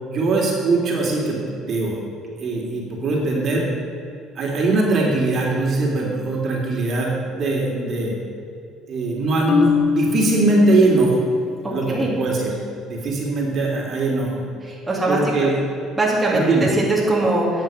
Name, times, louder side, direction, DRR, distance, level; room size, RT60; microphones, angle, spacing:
voice 1, 0.0-1.4 1.7-2.1 2.4-3.7 4.3-8.1 8.9-11.2 11.7-12.5 12.9-14.3 15.1-15.5 16.3-16.7, right 2 dB, 50° right, -2 dB, 2.9 m, -21 dB
Marimba xylophone, 9.5-11.5, left 6 dB, 60° left, 0.7 m, -23 dB
voice 2, 11.6-12.1 14.7-15.2 16.0-16.4 16.8-17.6, right 2 dB, 15° right, -5 dB, 2.7 m, -21 dB
10.5 x 7.4 x 7.5 m, 2.5 s
cardioid pair, 110°, 0 cm